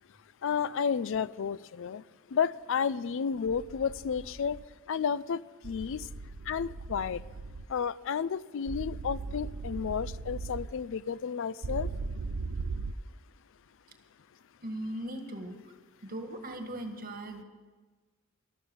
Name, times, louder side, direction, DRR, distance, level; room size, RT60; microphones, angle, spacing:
voice 1, 0.4-2.0 2.3-4.6 4.9-6.1 6.5-7.2 7.7-11.9, left 6 dB, 65° left, 19 dB, 0.4 m, -32 dB
sound 1, 3.5-4.6 5.6-7.7 8.7-10.7 11.6-12.9, right 3 dB, 75° right, 0.6 m, -38 dB
voice 2, 14.6-15.7 16.0-17.4, right 1 dB, 45° right, 6 dB, 1.8 m, -39 dB
13.0 x 13.0 x 7.2 m, 1.3 s
head